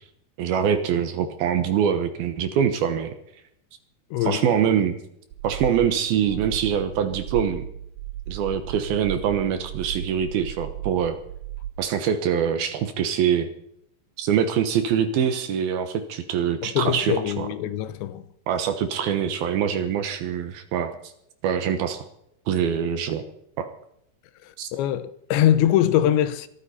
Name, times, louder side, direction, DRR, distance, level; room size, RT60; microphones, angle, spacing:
voice 1, 0.4-3.1 4.2-5.0 5.4-7.6 8.3-11.2 11.8-13.5 14.2-17.5 18.5-20.9 21.4-22.1 22.5-23.2 23.6-23.7 24.6-24.7, right 8 dB, 70° right, 2.6 m, -24 dB
voice 2, 4.1-4.5 16.6-18.2 24.4-26.5, left 11 dB, 80° left, 3.2 m, -23 dB
sound 1, 5.3-11.7, right 10 dB, 85° right, 2.0 m, -35 dB
22.5 x 13.5 x 4.3 m
omnidirectional pair, 5.1 m